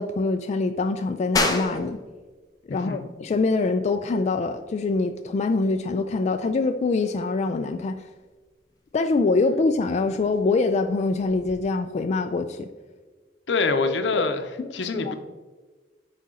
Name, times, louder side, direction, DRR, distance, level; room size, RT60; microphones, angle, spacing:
voice 1, 0.0-2.0 2.7-8.0 8.9-12.7 14.6-14.7 14.9-15.1, left 3 dB, 40° left, 7 dB, 0.3 m, -24 dB
sound 1, 1.4-11.6, left 2 dB, 20° left, 0.8 m, -35 dB
voice 2, 2.7-3.0 13.5-14.5 14.7-15.1, left 4 dB, 80° left, 8 dB, 0.7 m, -25 dB
9.6 x 4.2 x 3.7 m, 1.3 s
head